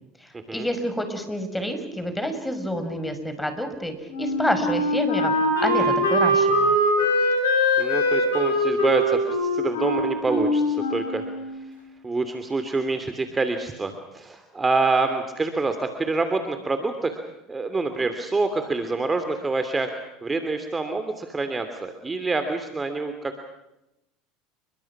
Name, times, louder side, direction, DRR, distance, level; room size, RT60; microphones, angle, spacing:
voice 1, 0.2-6.7, equal, 5° left, 7 dB, 5.8 m, -28 dB
Wind instrument woodwind instrument, 4.1-11.6, equal, 85° left, 7.8 m, -22 dB
voice 2, 7.8-11.2 12.0-17.2 17.5-19.9 20.2-23.4, right 3 dB, 20° right, 7 dB, 2.9 m, -26 dB
29.5 x 24.0 x 6.1 m, 0.88 s
hypercardioid pair, 75°, 0 cm